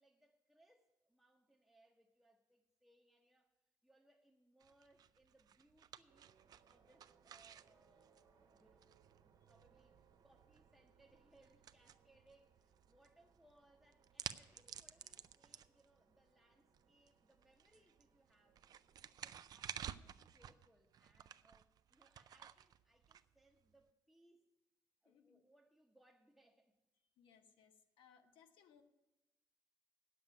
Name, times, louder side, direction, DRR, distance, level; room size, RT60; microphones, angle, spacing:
voice 1, 0.0-3.5 3.8-6.3 6.7-8.9 9.2-18.6 19.1-24.5 25.0-26.8 28.2-28.4, right 1 dB, ahead, -2 dB, 0.9 m, -72 dB
sound 1, 4.6-23.8, right 9 dB, 50° right, 0.4 m, -55 dB
sound 2, 6.1-19.4, right 6 dB, 75° right, 1.4 m, -74 dB
voice 2, 25.0-25.4 27.2-28.8, left 7 dB, 90° left, 6 dB, 1.1 m, -67 dB
9.0 x 7.5 x 9.2 m, 0.99 s
cardioid pair, 130°, 8 cm